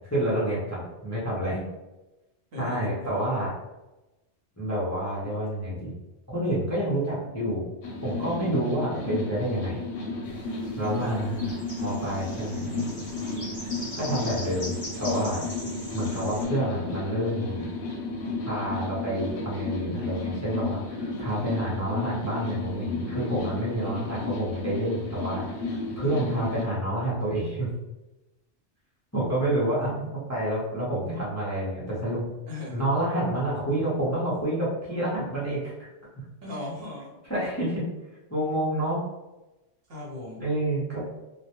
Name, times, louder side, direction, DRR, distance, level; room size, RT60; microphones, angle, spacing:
voice 1, 0.1-1.6 2.6-3.5 4.6-5.9 6.3-7.6 8.0-9.8 10.8-11.5 11.8-12.9 14.0-15.4 15.9-17.6 18.4-27.7 29.1-32.3 32.7-35.9 37.3-37.8 38.3-39.0 40.4-41.0, right 1 dB, 20° left, -8 dB, 0.5 m, -28 dB
voice 2, 2.5-2.9 11.0-11.2 23.8-24.4 29.7-30.1 32.5-32.8 36.4-37.2 39.9-40.4, left 2 dB, 60° right, -4 dB, 0.9 m, -39 dB
sound 1, 7.8-26.6, left 3 dB, 75° left, 0.8 m, -33 dB
sound 2, 10.2-16.4, left 1 dB, 35° left, 1.0 m, -41 dB
2.2 x 2.1 x 2.8 m, 1.0 s
omnidirectional pair, 1.2 m